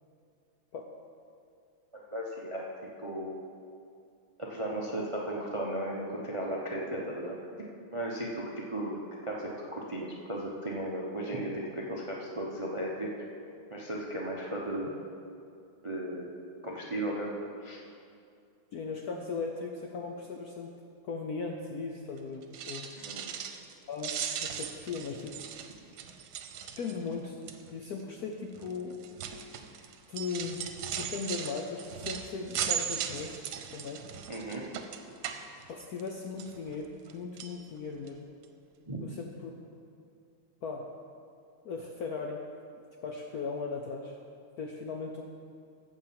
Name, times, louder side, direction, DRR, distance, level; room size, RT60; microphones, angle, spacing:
voice 1, 1.9-3.4 4.4-7.4 7.9-13.1 13.7-14.9 15.8-16.3 16.6-17.3 17.6-17.8 23.0-23.3 34.3-34.7 38.9-39.0, right 1 dB, 30° right, -2 dB, 0.6 m, -35 dB
voice 2, 18.7-20.7 21.0-22.9 23.9-25.4 26.8-27.4 27.7-29.0 30.1-33.4 33.7-34.0 35.7-38.3 39.0-39.5 40.6-40.9 41.6-42.4 43.0-44.2 44.6-45.2, left 4 dB, 65° left, 2 dB, 0.9 m, -38 dB
sound 1, 22.4-23.7 24.0-27.1 27.5-27.8 28.6-36.1 36.4-37.1 37.4-37.6 38.1-38.2 38.4-38.5, right 8 dB, 75° right, 1.6 m, -38 dB
14.0 x 4.8 x 7.5 m, 2.4 s
omnidirectional pair, 2.3 m